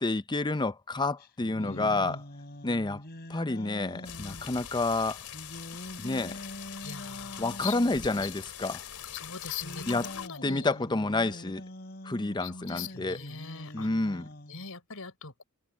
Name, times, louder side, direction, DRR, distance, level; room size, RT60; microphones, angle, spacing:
voice 1, 0.0-2.2 2.6-3.0 3.3-5.2 6.0-6.4 7.4-8.8 9.9-10.1 10.4-11.6 12.0-13.2 13.7-14.3, left 2 dB, 20° left, 0.6 m, -29 dB
sound 1, 1.2-4.5 5.3-8.3 9.4-14.7, left 1 dB, 45° left, 4.3 m, -44 dB
voice 2, 1.5-2.2 6.8-7.8 9.1-10.7 12.4-13.9 14.5-15.4, left 5 dB, 70° left, 6.1 m, -41 dB
sound 2, 4.0-10.3, left 9 dB, 85° left, 3.1 m, -43 dB
head